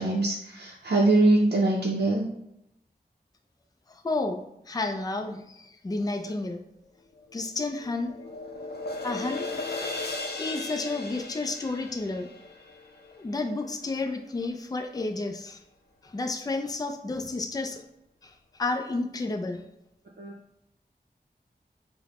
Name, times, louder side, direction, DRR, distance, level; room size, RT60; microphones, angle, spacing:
voice 1, 0.0-2.3 20.2-20.3, right 2 dB, 70° right, -4 dB, 0.5 m, -23 dB
voice 2, 3.9-6.7 7.3-8.1 9.0-9.6 10.4-12.3 13.1-15.6 16.0-17.8 18.2-19.7, left 2 dB, 20° left, 5 dB, 0.3 m, -31 dB
sound 1, 7.3-13.6, left 3 dB, 70° left, 0.5 m, -37 dB
4.8 x 2.1 x 2.9 m, 0.80 s
wide cardioid pair, 55°, 17 cm